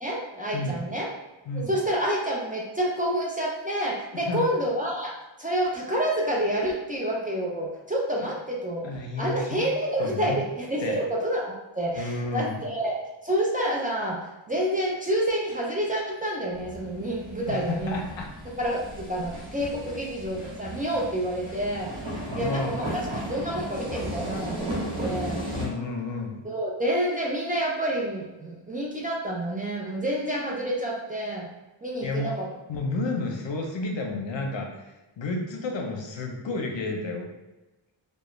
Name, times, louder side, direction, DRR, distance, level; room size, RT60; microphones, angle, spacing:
voice 1, 0.0-1.1 1.5-5.1 5.4-8.9 9.2-13.0 13.2-18.0 18.6-21.9 22.3-25.4 26.4-31.5 31.8-32.5, right 1 dB, 20° right, -4 dB, 0.4 m, -28 dB
voice 2, 4.1-4.5 8.8-9.6 10.0-10.4 10.8-11.0 12.0-12.5 17.5-18.3 19.8-20.0 22.2-22.7 25.5-26.4 32.0-32.4 32.7-34.7 35.2-37.3, left 2 dB, 65° left, 1 dB, 0.6 m, -31 dB
sound 1, 16.5-25.7, equal, 70° right, 0.9 m, -35 dB
2.3 x 2.2 x 3.0 m, 1.1 s
wide cardioid pair, 90°, 48 cm